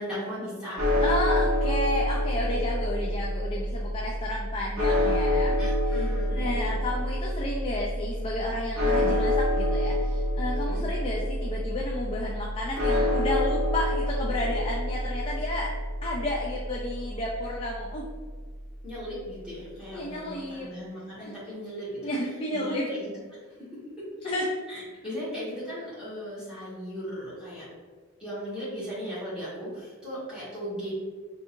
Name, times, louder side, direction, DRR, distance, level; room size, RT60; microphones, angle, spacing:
voice 1, 0.0-0.8 5.6-6.8 10.7-10.8 18.8-22.1 22.5-23.4 23.7-24.0 24.7-27.7 28.2-30.9, equal, 5° right, -11 dB, 1.4 m, -37 dB
sound 1, 0.8-19.0, left 1 dB, 70° right, 0.8 m, -28 dB
voice 2, 1.0-5.5 5.9-6.0 6.3-15.7 16.0-18.1 19.9-20.7 21.2-21.3 22.0-22.9 24.2-24.5, left 1 dB, 25° left, -4 dB, 0.4 m, -32 dB
3.7 x 2.7 x 2.5 m, 1.5 s
head